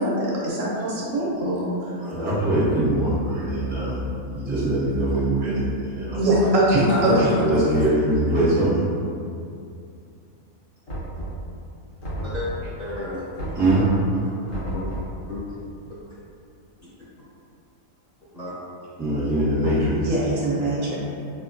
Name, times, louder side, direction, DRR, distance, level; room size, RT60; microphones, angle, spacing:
voice 1, 0.0-1.9 3.3-3.5 6.1-7.3 20.0-21.0, right 1 dB, 65° right, -5 dB, 1.1 m, -22 dB
voice 2, 2.0-4.0 4.3-6.3 7.0-8.8 13.5-13.9 19.0-20.1, right 1 dB, 15° right, -11 dB, 0.4 m, -22 dB
Knock, 10.9-11.6 12.0-12.8 13.4-14.0 14.5-15.2, right 1 dB, 60° left, 1.3 m, -32 dB
voice 3, 12.8-13.2 13.8-13.9 14.4-14.9 15.3-15.6 15.8-15.9 18.3-18.5 19.5-19.7, left 2 dB, 35° left, -11 dB, 0.8 m, -31 dB
4.1 x 2.9 x 2.5 m, 2.5 s
omnidirectional pair, 1.6 m